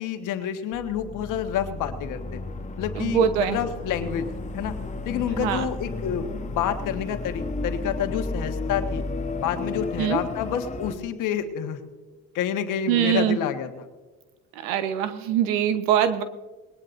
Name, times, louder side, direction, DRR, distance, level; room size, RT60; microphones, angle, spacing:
voice 1, 0.0-2.4 2.8-4.7 5.0-9.0 9.4-11.8 12.3-13.9, left 9 dB, 70° left, 7 dB, 1.4 m, -29 dB
sound 1, 0.7-10.9, left 2 dB, 20° left, 1.1 m, -33 dB
voice 2, 3.0-3.6 5.4-5.7 10.0-10.2 12.9-13.4 14.5-16.2, right 9 dB, 90° right, 10 dB, 1.0 m, -23 dB
21.0 x 18.5 x 2.6 m, 1.2 s
supercardioid pair, 90°, 32 cm